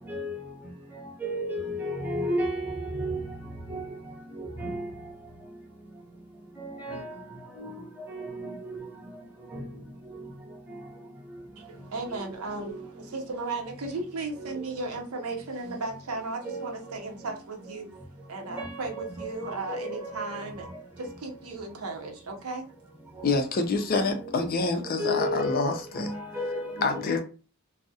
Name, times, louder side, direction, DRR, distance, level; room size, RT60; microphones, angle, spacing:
voice 1, 0.1-0.4 0.9-3.2 3.7-4.0 4.3-4.9 6.6-7.2 7.5-8.9 9.5-9.6 10.0-10.8 12.1-12.3 12.6-12.8 14.4-14.5 16.4-16.8 18.5-20.4 21.0-21.1 23.1-23.4 23.8-24.5 25.0-27.2, equal, 10° right, 0.7 m, -34 dB
voice 2, 11.6-18.0 18.3-20.7 21.0-22.7, right 3 dB, 80° right, 0.6 m, -35 dB
voice 3, 23.2-26.1 26.8-27.2, left 3 dB, 40° left, 0.4 m, -27 dB
2.3 x 2.0 x 2.7 m
head